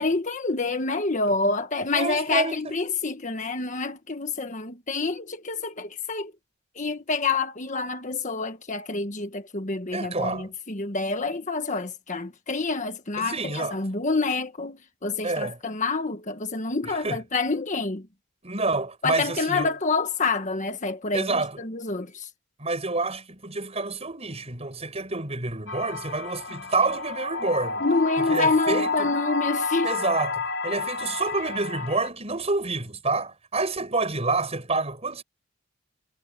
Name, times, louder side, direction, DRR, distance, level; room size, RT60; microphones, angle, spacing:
voice 1, 0.0-6.3 6.7-18.1 19.0-22.3 27.8-29.9, left 3 dB, 40° left, 1.5 m, -27 dB
voice 2, 1.9-2.7 9.9-10.5 13.2-13.8 15.2-15.6 16.9-17.2 18.4-19.7 21.1-21.6 22.6-27.8 28.2-29.1 29.8-35.2, right 3 dB, 30° right, 6.7 m, -28 dB
sound 1, 25.7-32.1, left 4 dB, 65° left, 3.0 m, -30 dB
head